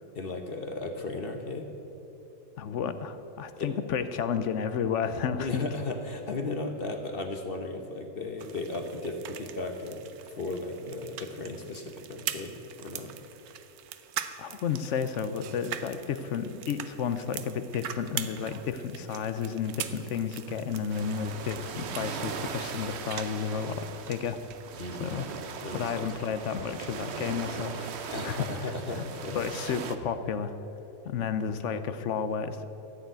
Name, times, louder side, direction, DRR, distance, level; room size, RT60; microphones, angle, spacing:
voice 1, 0.1-1.7 3.6-3.7 5.4-10.0 10.3-13.2 24.8-25.2 25.6-26.1 28.1-29.5, left 2 dB, 45° left, 5 dB, 1.1 m, -35 dB
voice 2, 2.6-5.6 14.4-24.4 25.0-25.3 25.7-29.0 29.3-30.5 31.0-32.6, left 7 dB, 60° left, 11 dB, 0.9 m, -32 dB
sound 1, 8.4-24.7 25.0-26.1, right 10 dB, 85° right, 1.2 m, -42 dB
sound 2, 20.9-30.0, right 6 dB, 55° right, 0.9 m, -39 dB
13.5 x 7.0 x 9.1 m, 3.0 s
omnidirectional pair, 1.6 m